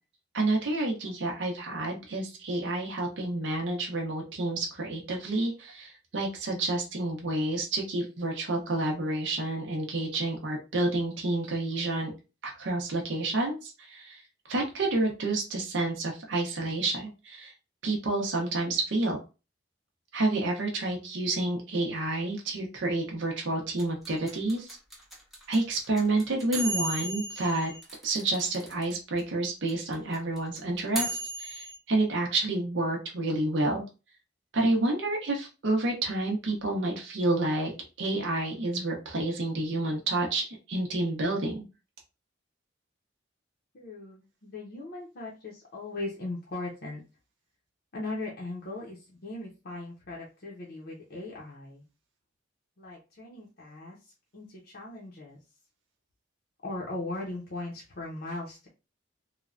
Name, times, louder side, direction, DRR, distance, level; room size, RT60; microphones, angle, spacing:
voice 1, 0.3-12.1 12.4-17.5 17.8-19.2 20.1-24.8 25.5-27.7 28.0-33.8 34.5-37.7 38.0-41.6, right 2 dB, 65° right, 0 dB, 0.6 m, -29 dB
sound 1, 23.8-28.9 29.2-29.3 29.4-31.8, right 1 dB, ahead, 0.6 m, -35 dB
voice 2, 43.7-47.0 47.9-51.8 52.8-55.4 56.6-58.7, left 2 dB, 50° left, -4 dB, 0.6 m, -39 dB
3.1 x 2.1 x 2.4 m, 0.30 s
head